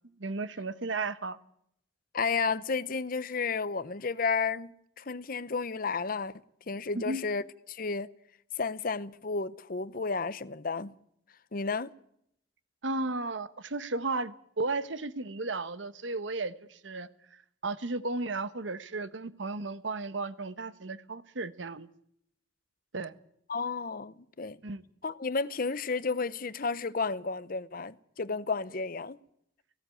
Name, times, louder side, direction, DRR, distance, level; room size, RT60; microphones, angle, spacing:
voice 1, 0.2-1.4 6.9-7.2 12.8-21.9 22.9-23.1 24.6-24.8, right 3 dB, 85° right, 1.1 m, -34 dB
voice 2, 2.1-6.4 6.7-7.4 7.7-8.1 8.6-10.9 11.5-11.9 23.5-24.6 25.0-29.2, left 4 dB, 50° left, 0.8 m, -32 dB
17.5 x 16.0 x 9.1 m
head